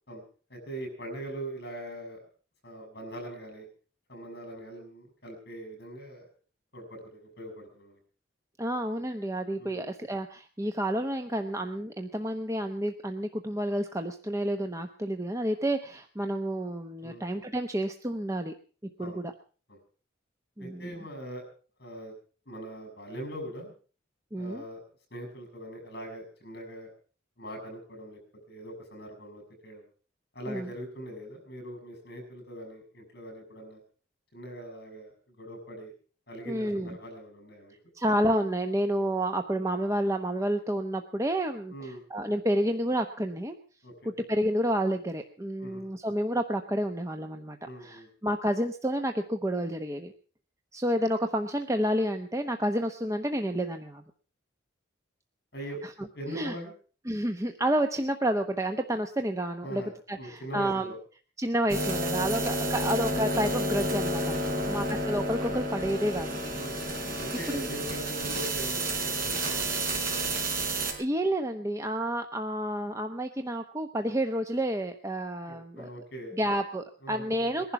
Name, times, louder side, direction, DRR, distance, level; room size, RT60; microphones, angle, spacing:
voice 1, 0.5-2.2 2.6-3.7 4.1-6.3 6.7-8.0 9.6-9.9 17.0-17.3 19.0-19.2 19.7-19.8 20.6-21.5 21.8-22.1 22.5-23.7 24.3-24.8 25.1-26.9 27.4-28.2 28.5-29.8 30.3-33.8 34.3-35.9 36.3-37.7 41.7-42.0 43.8-44.1 45.6-45.9 47.6-48.1 55.5-55.8 56.1-56.7 59.6-59.9 60.2-61.0 62.3-62.4 64.5-64.8 66.5-66.8 67.1-70.4 75.4-76.4 77.0-77.3, right 1 dB, 55° left, 5 dB, 6.2 m, -41 dB
voice 2, 8.6-18.5 19.0-19.3 20.6-20.8 24.3-24.6 30.5-30.7 36.5-37.0 37.9-43.6 44.0-50.1 50.7-54.0 55.8-55.9 56.3-56.5 57.1-59.8 60.1-60.9 61.4-66.3 67.5-67.7 70.7-75.9 76.3-77.7, right 1 dB, 15° right, 6 dB, 0.9 m, -30 dB
sound 1, 61.7-70.9, right 1 dB, 45° right, 4.9 m, -30 dB
21.0 x 11.0 x 5.8 m, 0.41 s
head